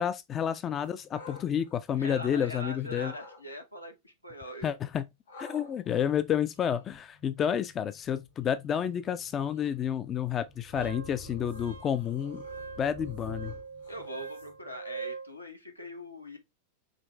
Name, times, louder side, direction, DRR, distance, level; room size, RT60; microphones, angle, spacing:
voice 1, 0.0-3.1 4.6-5.1 5.4-12.5 12.8-13.5, left 9 dB, 25° left, 0.3 m, -30 dB
sound 1, 0.8-2.5 2.9-3.4 5.3-14.7, left 3 dB, 70° left, 2.7 m, -50 dB
voice 2, 2.0-4.8 13.9-16.4, equal, 85° left, 1.0 m, -42 dB
Wind instrument woodwind instrument, 10.7-15.3, right 5 dB, 75° right, 0.9 m, -43 dB
5.1 x 3.1 x 3.1 m
figure-of-eight pair, 90°, 0 cm